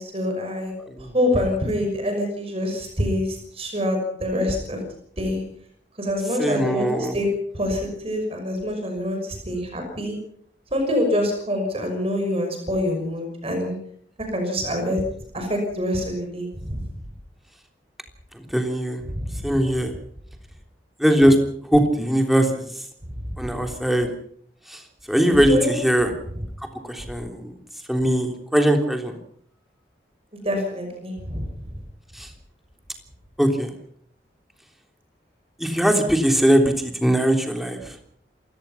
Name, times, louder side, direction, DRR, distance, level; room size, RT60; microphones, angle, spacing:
voice 1, 0.0-0.7 1.1-4.8 5.2-5.4 6.0-7.3 7.5-10.2 10.7-13.8 14.3-15.0 15.3-16.9 19.1-19.4 25.2-25.8 30.4-31.4, left 1 dB, 35° right, 4 dB, 6.2 m, -25 dB
voice 2, 0.9-1.5 6.2-7.2 18.3-19.0 19.4-19.9 21.0-21.4 21.7-22.8 23.4-24.1 24.7-24.8 25.1-26.1 26.8-27.5 27.9-29.2 32.1-32.3 33.4-33.7 35.6-38.0, equal, ahead, 4 dB, 3.4 m, -21 dB
28.0 x 17.0 x 5.8 m, 0.63 s
head